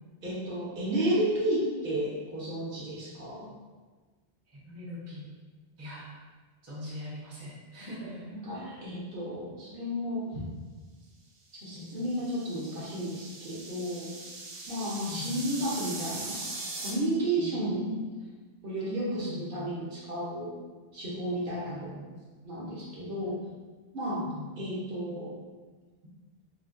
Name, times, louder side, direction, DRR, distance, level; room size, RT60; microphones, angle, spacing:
voice 1, 0.2-3.5 8.4-10.4 11.6-14.1 14.7-16.4 16.8-17.9 18.6-20.5 20.9-21.7 22.4-23.4 23.9-24.2 24.6-25.3, right 1 dB, 55° right, -7 dB, 0.8 m, -32 dB
voice 2, 4.5-5.3 5.8-6.1 6.6-8.3 8.5-8.8 11.7-11.9 15.1-15.5 17.4-18.1 19.0-19.8 21.4-22.2 23.0-23.2 23.4-23.5 24.1-24.8, left 1 dB, 20° right, -7 dB, 0.5 m, -42 dB
sound 1, 11.8-16.9, right 3 dB, 90° right, 0.9 m, -40 dB
3.3 x 2.1 x 2.4 m, 1.4 s
omnidirectional pair, 1.2 m